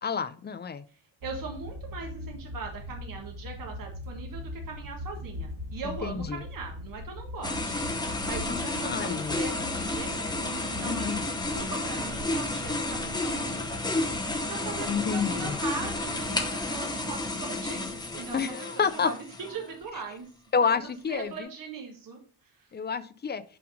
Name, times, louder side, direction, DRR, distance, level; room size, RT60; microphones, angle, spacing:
voice 1, 0.0-0.8 6.0-6.4 8.5-9.4 10.8-11.2 14.9-15.6 18.3-19.1 20.5-21.5 22.7-23.4, left 6 dB, 25° left, 14 dB, 0.3 m, -29 dB
voice 2, 0.9-13.8 14.1-19.1 19.4-20.3 21.1-22.7, right 4 dB, 50° right, 1 dB, 1.7 m, -40 dB
sound 1, 1.2-18.4, left 1 dB, 80° right, 2.5 m, -42 dB
sound 2, 7.4-19.7, left 2 dB, 10° left, 0.8 m, -32 dB
5.8 x 5.2 x 5.0 m, 0.43 s
wide cardioid pair, 150°, 41 cm